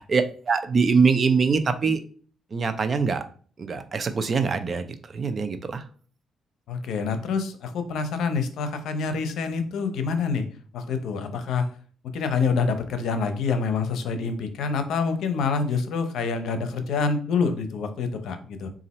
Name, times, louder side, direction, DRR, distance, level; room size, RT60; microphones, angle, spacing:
voice 1, 0.0-2.0 2.5-3.2 3.6-5.8, right 5 dB, 40° right, 9 dB, 0.5 m, -23 dB
voice 2, 6.7-10.5 10.7-11.7 12.1-18.7, left 5 dB, 75° left, 9 dB, 0.6 m, -26 dB
3.9 x 2.5 x 4.2 m, 0.43 s
cardioid pair, 90°, 0 cm